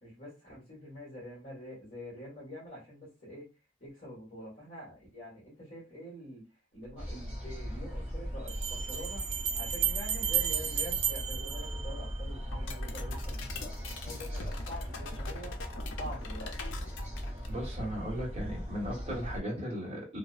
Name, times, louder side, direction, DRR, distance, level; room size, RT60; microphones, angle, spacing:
voice 1, 0.0-3.5 3.8-9.2 9.5-15.6 15.9-16.5, equal, 35° left, -6 dB, 1.4 m, -46 dB
sound 1, 6.9-7.0 8.5-12.4, right 9 dB, 65° right, 0.5 m, -33 dB
sound 2, 7.0-19.4, equal, 5° right, 0.8 m, -39 dB
sound 3, 12.5-17.7, left 4 dB, 75° left, 0.5 m, -44 dB
voice 2, 17.5-20.2, equal, 30° right, -3 dB, 1.0 m, -36 dB
2.8 x 2.0 x 2.4 m, 0.29 s
head